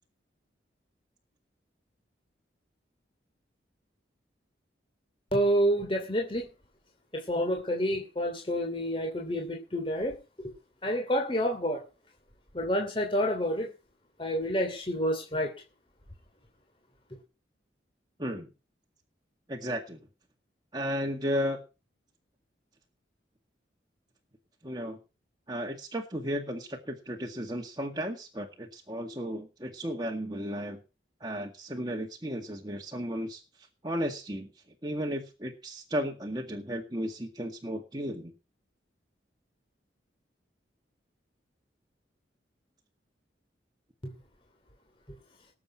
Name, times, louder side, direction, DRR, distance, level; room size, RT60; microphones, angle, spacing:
voice 1, 5.3-6.5 7.1-10.5 10.8-11.8 12.5-13.7 14.2-15.5 44.0-44.1, equal, 30° left, 2 dB, 3.0 m, -29 dB
voice 2, 19.5-20.0 20.7-21.6 24.6-25.0 25.5-30.8 31.2-33.4 33.8-34.5 34.8-38.3, equal, 20° right, 1 dB, 1.9 m, -34 dB
19.5 x 7.7 x 5.7 m, 0.31 s
head